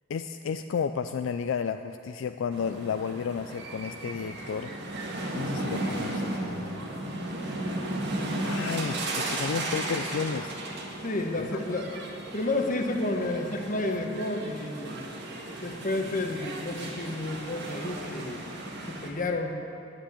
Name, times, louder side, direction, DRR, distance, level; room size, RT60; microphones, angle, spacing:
voice 1, 0.1-4.7 5.1-6.8 8.4-10.6 11.4-11.6, left 6 dB, 70° left, 8 dB, 0.4 m, -32 dB
sound 1, 2.5-19.1, right 1 dB, 60° right, 1.7 m, -35 dB
voice 2, 11.0-11.9 12.3-15.0 15.6-18.5 18.9-19.6, left 2 dB, 45° left, 4 dB, 1.1 m, -31 dB
9.8 x 9.1 x 8.9 m, 2.7 s
head